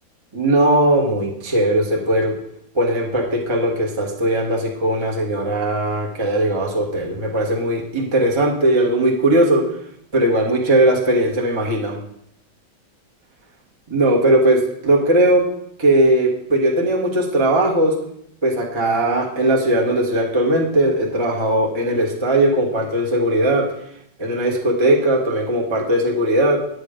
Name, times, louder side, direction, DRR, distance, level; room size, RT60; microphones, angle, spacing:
voice 1, 0.3-2.3 2.7-9.6 10.1-12.0 13.9-15.4 15.8-17.9 18.4-23.7 24.2-26.6, right 1 dB, 15° right, -1 dB, 1.2 m, -18 dB
9.6 x 7.9 x 5.1 m, 0.73 s
omnidirectional pair, 2.2 m